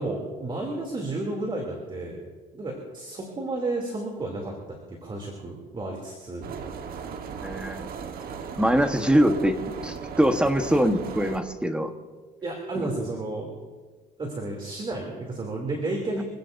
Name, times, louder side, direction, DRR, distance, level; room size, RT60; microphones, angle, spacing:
voice 1, 0.0-2.2 2.5-6.6 12.4-13.5 14.2-16.2, right 2 dB, 30° right, 0 dB, 2.9 m, -32 dB
sound 1, 6.4-11.4, right 6 dB, 60° right, 1.3 m, -37 dB
voice 2, 7.4-7.9 8.6-9.6 9.8-11.9 12.7-12.9, equal, 5° right, 7 dB, 1.2 m, -23 dB
26.0 x 16.5 x 2.7 m, 1.4 s
cardioid pair, 110°, 17 cm